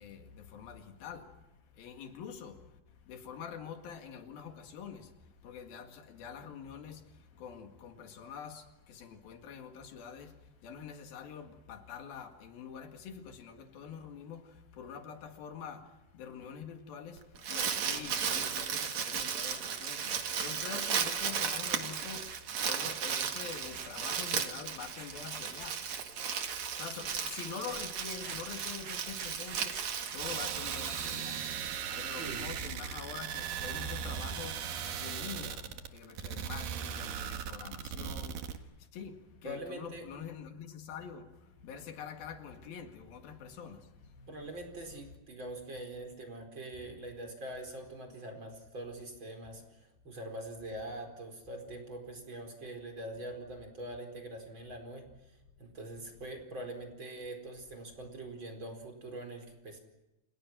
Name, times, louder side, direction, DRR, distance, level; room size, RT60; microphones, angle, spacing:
voice 1, 0.0-1.3 1.7-2.6 3.1-5.1 5.4-10.4 10.6-25.8 26.6-31.4 31.7-44.5 44.9-45.0 55.9-56.0, left 7 dB, 85° left, 3.9 m, -46 dB
Crumpling crinkling, 17.2-31.8, right 7 dB, 55° right, 3.0 m, -35 dB
sound 1, 17.4-31.6, right 6 dB, 90° right, 0.8 m, -49 dB
sound 2, 30.2-38.6, right 8 dB, 75° right, 3.3 m, -38 dB
voice 2, 32.2-32.6 39.4-40.1 44.3-59.8, right 1 dB, 30° right, 5.2 m, -44 dB
30.0 x 29.0 x 6.1 m
omnidirectional pair, 4.1 m